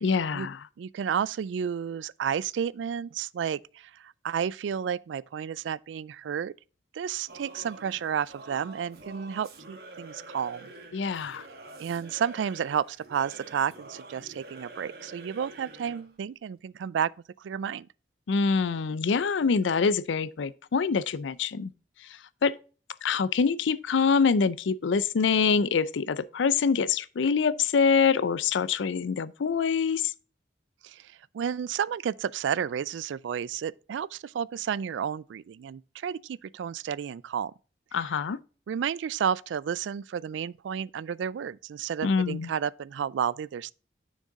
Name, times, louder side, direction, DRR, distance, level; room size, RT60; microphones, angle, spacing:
voice 1, 0.0-0.6 10.9-11.5 18.3-21.7 22.1-22.6 23.0-30.1 37.9-38.4 42.0-42.5, left 5 dB, 90° left, 0.4 m, -25 dB
voice 2, 0.8-6.5 6.9-10.7 11.8-17.1 17.4-17.9 30.8-37.5 38.7-43.7, right 8 dB, 85° right, 0.3 m, -31 dB
Singing / Musical instrument, 7.3-16.1, right 2 dB, 55° right, 1.4 m, -47 dB
6.5 x 6.5 x 3.5 m
head